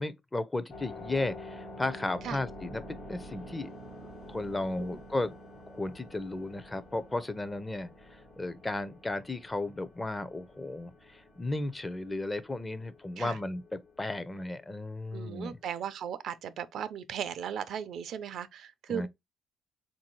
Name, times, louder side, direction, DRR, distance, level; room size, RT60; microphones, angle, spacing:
voice 1, 0.0-3.7 4.0-5.4 5.7-15.6 18.9-19.1, left 2 dB, 20° left, 0.5 m, -35 dB
sound 1, 0.7-15.7, left 1 dB, 75° left, 1.3 m, -49 dB
voice 2, 15.1-19.1, right 8 dB, 70° right, 0.4 m, -37 dB
3.6 x 2.6 x 2.9 m
cardioid pair, 90°, 0 cm